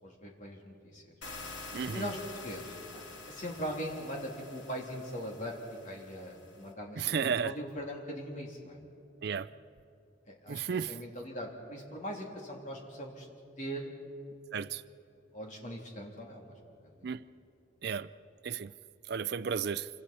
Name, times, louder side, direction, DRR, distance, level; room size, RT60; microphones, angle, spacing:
voice 1, 0.0-1.1 1.9-5.6 5.8-8.8 10.3-10.6 10.9-13.3 13.6-13.9 15.3-16.5 16.8-17.0, equal, 40° left, 3.3 m, -41 dB
sound 1, 1.2-6.7, left 3 dB, 75° left, 2.5 m, -47 dB
voice 2, 1.7-2.1 7.0-7.5 9.2-9.5 10.5-10.9 14.5-14.8 17.0-17.2 17.8-18.1 18.4-18.7 19.1-19.9, right 6 dB, 55° right, 0.4 m, -33 dB
27.5 x 25.5 x 4.4 m
head